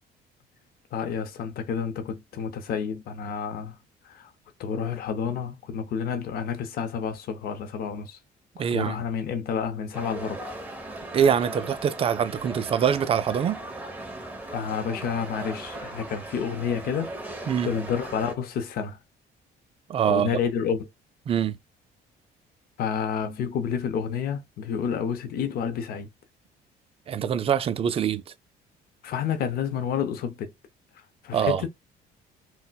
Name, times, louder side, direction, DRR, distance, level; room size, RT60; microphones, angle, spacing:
voice 1, 0.9-3.8 4.0-4.3 4.6-8.2 8.7-10.5 14.5-17.1 17.6-19.0 20.1-20.9 22.8-26.1 29.0-30.5 31.2-31.7, left 7 dB, 65° left, 0.6 m, -29 dB
voice 2, 8.6-9.0 11.1-13.6 17.5-17.7 19.9-20.4 21.3-21.5 27.1-28.2 31.3-31.6, right 8 dB, 35° right, 0.3 m, -24 dB
sound 1, 9.9-18.3, right 2 dB, 10° right, 0.8 m, -38 dB
4.0 x 2.1 x 2.2 m
cardioid pair, 110°, 17 cm